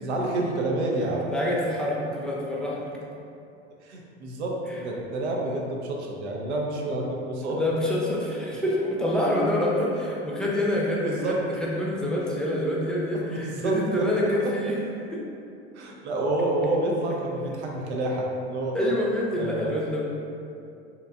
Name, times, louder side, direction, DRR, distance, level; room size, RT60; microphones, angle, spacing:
voice 1, 0.0-1.2 3.8-7.6 11.0-11.4 12.8-13.0 13.3-14.1 14.4-14.5 15.7-18.9 19.4-19.8, right 2 dB, 85° right, -1 dB, 0.6 m, -28 dB
voice 2, 1.3-2.9 4.7-4.8 7.5-14.8 15.1-15.2 18.7-20.0, left 1 dB, ahead, -5 dB, 0.6 m, -26 dB
3.8 x 2.8 x 2.3 m, 2.6 s
hypercardioid pair, 90°, 33 cm